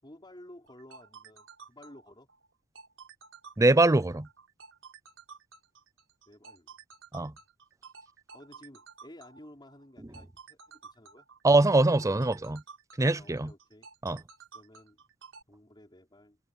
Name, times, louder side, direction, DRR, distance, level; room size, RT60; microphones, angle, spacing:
voice 1, 0.0-2.3 6.3-6.7 8.3-11.3 13.1-13.9 14.5-15.0 15.5-16.4, left 1 dB, 25° left, 5.3 m, -53 dB
sound 1, 0.7-15.4, right 5 dB, 75° right, 5.4 m, -52 dB
voice 2, 3.6-4.3 7.1-7.3 11.4-12.6 13.0-13.5 14.0-14.2, right 2 dB, 15° right, 0.6 m, -23 dB
head